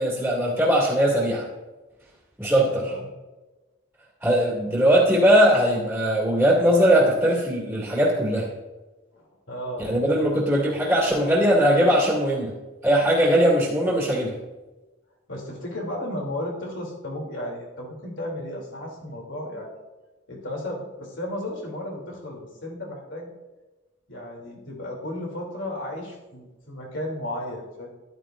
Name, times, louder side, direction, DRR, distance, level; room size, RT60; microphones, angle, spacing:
voice 1, 0.0-1.4 2.4-2.9 4.2-8.5 9.8-12.5 12.8-14.3, equal, 5° right, -6 dB, 2.2 m, -20 dB
voice 2, 2.6-3.1 9.1-10.4 15.3-19.7 20.3-23.3 24.1-27.9, left 1 dB, 80° left, -2 dB, 3.0 m, -34 dB
14.0 x 11.0 x 2.5 m, 1.2 s
head